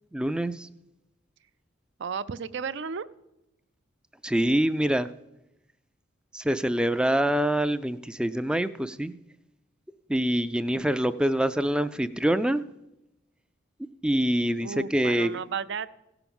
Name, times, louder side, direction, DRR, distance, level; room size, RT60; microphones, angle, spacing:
voice 1, 0.1-0.7 4.2-5.1 6.3-9.1 10.1-12.6 14.0-15.4, right 1 dB, 5° right, 0.3 m, -25 dB
voice 2, 2.0-3.1 14.6-15.9, right 6 dB, 65° right, 0.5 m, -33 dB
16.0 x 5.9 x 7.0 m
head